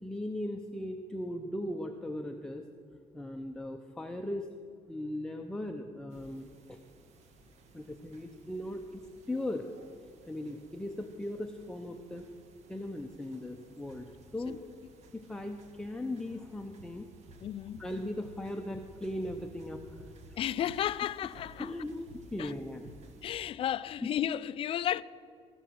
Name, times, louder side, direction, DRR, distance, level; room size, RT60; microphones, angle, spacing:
voice 1, 0.0-2.7 3.1-4.5 4.9-6.8 7.7-9.0 9.3-9.7 10.3-12.3 12.7-14.6 15.1-17.1 17.8-20.0 20.3-20.4 21.6-22.9 24.0-24.1, left 1 dB, 5° left, 0.6 m, -38 dB
sound 1, 6.1-23.5, right 1 dB, 75° right, 1.3 m, -56 dB
voice 2, 17.4-17.8 20.4-21.7 22.4-22.5 23.2-25.0, left 11 dB, 50° left, 0.4 m, -33 dB
17.5 x 6.9 x 6.3 m
cardioid pair, 135°, 12 cm